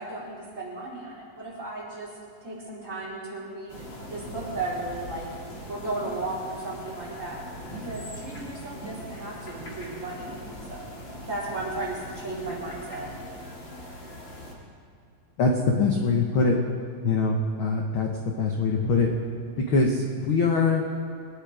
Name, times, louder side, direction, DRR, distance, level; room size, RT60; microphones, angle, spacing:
voice 1, 0.0-2.1 2.4-5.3 5.7-7.4 7.8-10.9 11.2-13.1, right 2 dB, 20° right, -6 dB, 4.8 m, -35 dB
sound 1, 3.7-14.5, equal, 35° left, 3.1 m, -41 dB
voice 2, 15.4-16.6 17.0-19.1 19.7-20.8, left 3 dB, 60° left, 1 dB, 1.3 m, -23 dB
24.0 x 10.5 x 5.0 m, 2.4 s
omnidirectional pair, 4.0 m